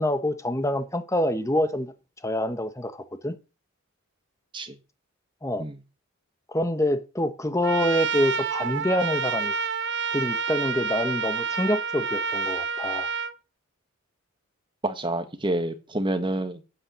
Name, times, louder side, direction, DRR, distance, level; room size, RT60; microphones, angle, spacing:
voice 1, 0.0-1.9 2.2-3.4 5.4-5.7 6.5-9.5 10.1-13.1, left 1 dB, 15° left, 1.0 m, -26 dB
Trumpet, 7.6-13.3, right 5 dB, 55° right, 0.9 m, -28 dB
voice 2, 14.8-16.6, right 1 dB, 20° right, 1.3 m, -28 dB
8.7 x 8.6 x 6.2 m
head